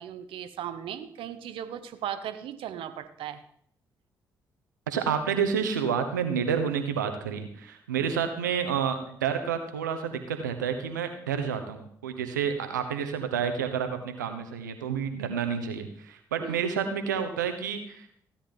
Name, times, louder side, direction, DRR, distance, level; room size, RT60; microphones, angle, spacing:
voice 1, 0.0-3.4 8.0-8.2 16.4-16.6, right 10 dB, 65° right, 10 dB, 1.1 m, -37 dB
voice 2, 4.9-18.1, right 7 dB, 90° right, 7 dB, 1.2 m, -29 dB
16.0 x 10.0 x 3.9 m, 0.64 s
hypercardioid pair, 40°, 10 cm